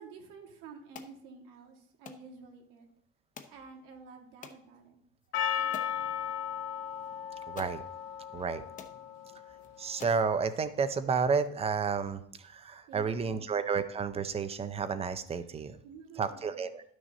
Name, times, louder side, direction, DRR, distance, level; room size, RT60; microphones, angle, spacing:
voice 1, 0.0-2.9 3.5-5.0 12.9-13.4 15.8-16.6, right 4 dB, 75° right, 2 dB, 2.0 m, -50 dB
sound 1, 0.9-1.2 2.1-2.3 3.4-3.6 4.4-4.6 5.2-5.3 5.7-6.0 7.0-7.1 7.6-7.8 8.4-8.5 8.8-9.0 9.6-9.7 10.0-10.3, left 6 dB, 25° left, 0.7 m, -47 dB
Percussion, 5.3-9.9, left 9 dB, 85° left, 1.2 m, -36 dB
voice 2, 7.5-7.8 8.3-8.6 9.8-15.8 16.2-16.8, right 5 dB, 20° right, 12 dB, 0.5 m, -31 dB
11.5 x 6.2 x 4.0 m, 0.67 s
cardioid pair, 160°, 32 cm